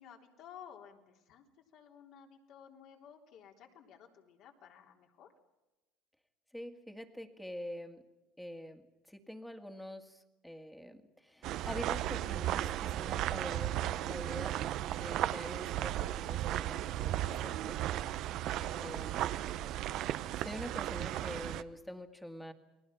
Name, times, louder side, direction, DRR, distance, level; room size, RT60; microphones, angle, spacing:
voice 1, 0.0-1.5 1.7-5.3 18.4-19.4, left 8 dB, 60° left, 2 dB, 3.6 m, -55 dB
voice 2, 6.5-8.0 8.4-8.8 9.1-14.6 15.0-17.8 18.8-19.2 20.3-22.5, equal, 5° left, 6 dB, 2.0 m, -45 dB
sound 1, 11.4-21.6, right 13 dB, 60° right, 0.8 m, -35 dB
29.5 x 20.5 x 5.9 m, 1.1 s
supercardioid pair, 105°, 0 cm